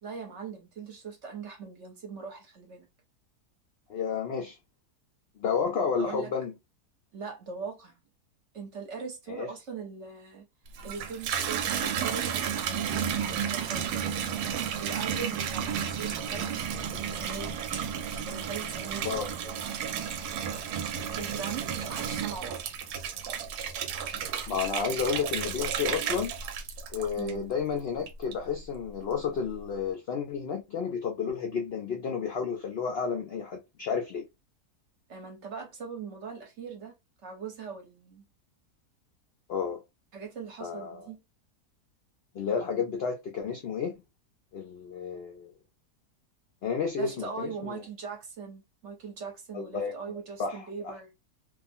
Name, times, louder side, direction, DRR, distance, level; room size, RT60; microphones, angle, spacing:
voice 1, 0.0-2.9 6.0-6.3 7.1-8.0 8.5-10.4 10.8-13.9 14.8-17.7 18.3-20.1 21.2-22.9 27.2-27.5 35.1-36.9 37.2-38.2 40.1-41.2 47.0-51.1, right 5 dB, 60° right, 0.9 m, -41 dB
voice 2, 3.9-4.6 5.4-6.5 9.3-9.5 19.0-19.3 24.5-26.3 26.9-34.3 39.5-39.8 40.6-41.1 42.3-43.9 44.5-45.5 46.6-47.8 49.5-49.9 50.4-50.9, left 6 dB, 80° left, 0.5 m, -31 dB
Water tap faucet / Bathtub (filling or washing), 10.7-27.6 28.1-28.6, right 8 dB, 85° right, 1.1 m, -32 dB
2.6 x 2.4 x 2.5 m
omnidirectional pair, 1.7 m